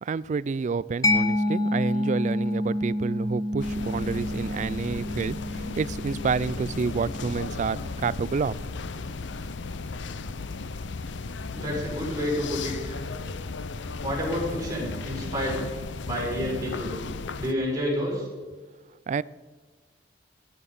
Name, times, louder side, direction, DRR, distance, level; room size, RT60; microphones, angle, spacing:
voice 1, 0.0-8.6 19.1-19.2, right 5 dB, 40° right, 21 dB, 0.3 m, -29 dB
Mallet percussion, 1.0-8.4, left 1 dB, 20° left, 1.0 m, -29 dB
sound 1, 3.6-17.5, left 3 dB, 85° left, 0.6 m, -35 dB
voice 2, 11.5-13.0 14.0-15.6 16.0-17.0 17.4-18.3, equal, 20° right, -4 dB, 5.1 m, -29 dB
16.5 x 10.5 x 5.5 m, 1.5 s
head